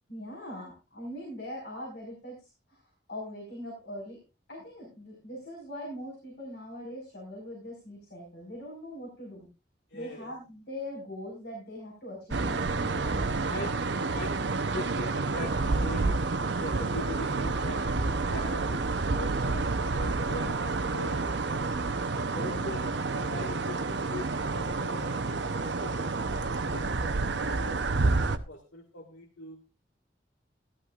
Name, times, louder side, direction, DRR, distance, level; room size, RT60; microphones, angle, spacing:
voice 1, 0.1-2.4 2.7-2.8 3.1-4.2 4.5-9.5 9.9-13.7 22.4-22.7, left 1 dB, 60° left, -3 dB, 4.8 m, -41 dB
voice 2, 9.9-10.2 13.4-13.7 14.1-16.3 16.6-17.8 18.2-21.8 22.3-26.2 26.5-29.6, left 2 dB, 85° left, 1 dB, 1.7 m, -42 dB
sound 1, 12.3-28.4, right 3 dB, 75° right, 0.8 m, -29 dB
15.0 x 13.0 x 2.4 m, 0.28 s
head